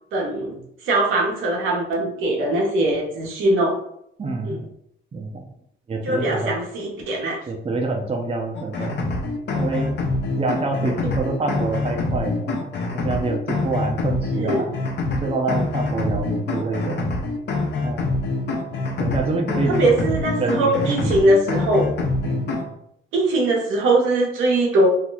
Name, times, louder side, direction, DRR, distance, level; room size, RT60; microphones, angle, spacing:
voice 1, 0.1-0.6 0.8-3.8 4.4-4.6 6.0-7.4 14.3-14.6 19.7-21.9 23.1-24.9, right 2 dB, 90° right, -2 dB, 1.1 m, -21 dB
voice 2, 4.2-4.7 5.1-5.5 5.9-6.6 7.5-9.0 9.5-9.9 10.4-12.5 12.9-14.8 15.2-17.0 17.8-18.1 19.0-20.1 20.4-21.2 22.2-22.5, right 3 dB, 30° right, 2 dB, 0.6 m, -26 dB
sound 1, 8.5-22.7, left 3 dB, 60° left, 0.8 m, -25 dB
2.9 x 2.4 x 3.9 m, 0.74 s
cardioid pair, 90°, 20 cm